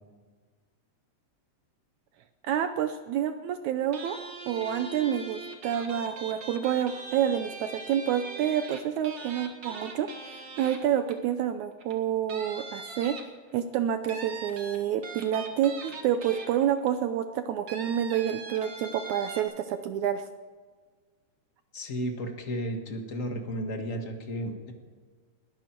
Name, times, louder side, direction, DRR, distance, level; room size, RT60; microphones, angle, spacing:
voice 1, 2.4-4.2 4.5-13.2 13.5-20.2, right 9 dB, 75° right, 9 dB, 1.8 m, -28 dB
sound 1, 3.9-11.3 11.8-11.9 12.3-13.6 14.1-16.9 17.7-19.4, right 4 dB, 45° right, 1.7 m, -41 dB
voice 2, 21.7-24.7, equal, 45° left, 4 dB, 1.0 m, -33 dB
21.0 x 13.5 x 4.5 m, 1.5 s
omnidirectional pair, 3.9 m